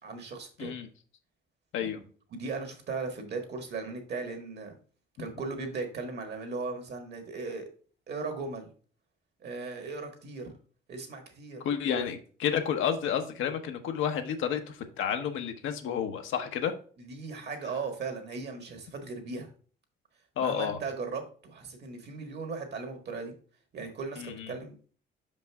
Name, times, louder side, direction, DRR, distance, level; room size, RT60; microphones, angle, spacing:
voice 1, 0.0-0.7 2.3-4.8 5.2-7.7 8.1-8.7 9.4-10.5 10.9-11.6 11.9-12.0 17.0-19.5 20.4-23.3 23.7-24.9, right 4 dB, 55° right, 5 dB, 1.7 m, -37 dB
voice 2, 11.6-16.7 20.4-20.8 24.2-24.5, left 8 dB, 80° left, 6 dB, 0.9 m, -31 dB
5.4 x 5.3 x 3.4 m, 0.42 s
cardioid pair, 90°, 20 cm